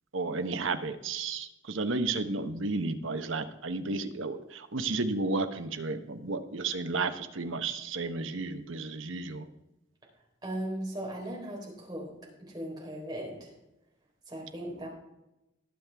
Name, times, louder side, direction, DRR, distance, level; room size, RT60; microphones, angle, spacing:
voice 1, 0.1-9.5, right 3 dB, 80° right, 8 dB, 1.0 m, -32 dB
voice 2, 10.4-12.1 12.4-13.5 14.3-14.9, right 1 dB, 20° right, -3 dB, 3.7 m, -37 dB
20.0 x 7.5 x 3.5 m, 0.92 s
head